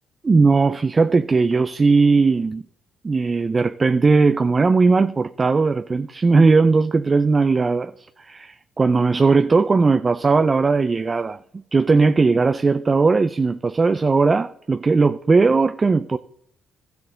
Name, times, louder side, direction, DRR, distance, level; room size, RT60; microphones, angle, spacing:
voice 1, 0.2-2.7 3.0-11.4 11.7-16.2, right 4 dB, 30° right, 0.4 m, -18 dB
13.0 x 6.9 x 3.9 m
cardioid pair, 90°, 0 cm